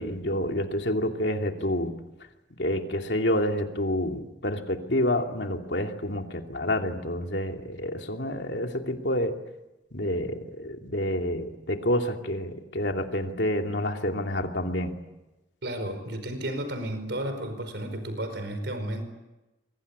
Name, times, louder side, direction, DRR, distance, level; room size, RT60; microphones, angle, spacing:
voice 1, 0.0-1.9 2.6-9.4 9.9-14.9, left 1 dB, 65° left, 3 dB, 2.8 m, -28 dB
voice 2, 15.6-19.0, right 1 dB, 65° right, 9 dB, 5.1 m, -32 dB
27.0 x 23.5 x 8.4 m, 1.0 s
head